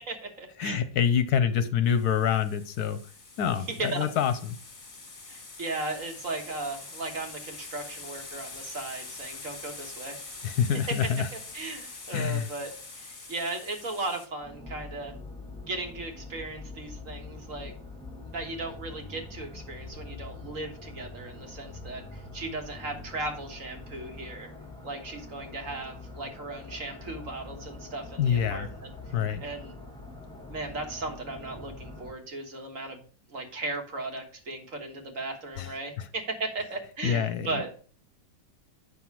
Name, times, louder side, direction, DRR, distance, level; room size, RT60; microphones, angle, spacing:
voice 1, 0.1-0.8 3.6-4.1 5.3-10.2 10.9-11.0 11.3-15.1 15.7-17.7 18.2-24.5 24.8-28.9 29.4-29.7 30.5-33.0 33.3-37.7, right 2 dB, 50° right, 1.8 m, -36 dB
voice 2, 0.6-3.0 3.4-4.3 10.4-11.3 12.1-12.5 28.2-28.7 29.1-29.4 35.6-36.1 37.0-37.6, left 8 dB, 70° left, 1.2 m, -26 dB
sound 1, 1.9-14.3, left 3 dB, 30° left, 1.7 m, -44 dB
sound 2, 14.4-32.1, left 2 dB, 5° left, 1.1 m, -44 dB
8.3 x 5.9 x 4.6 m
omnidirectional pair, 1.9 m